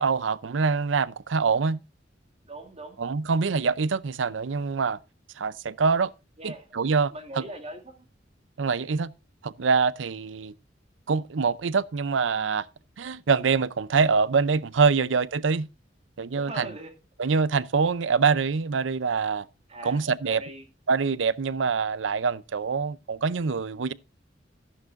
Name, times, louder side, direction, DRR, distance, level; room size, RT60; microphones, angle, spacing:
voice 1, 0.0-1.8 3.0-5.0 5.4-6.1 6.4-7.4 8.6-9.1 9.4-10.5 11.1-12.7 13.0-15.7 16.2-16.7 17.2-19.5 19.8-20.4 20.9-23.9, right 5 dB, 85° right, 0.6 m, -25 dB
voice 2, 2.4-3.0 6.4-6.7 7.1-8.1 16.3-16.9 19.7-20.7, right 1 dB, 35° right, 2.3 m, -40 dB
13.5 x 11.0 x 2.5 m
head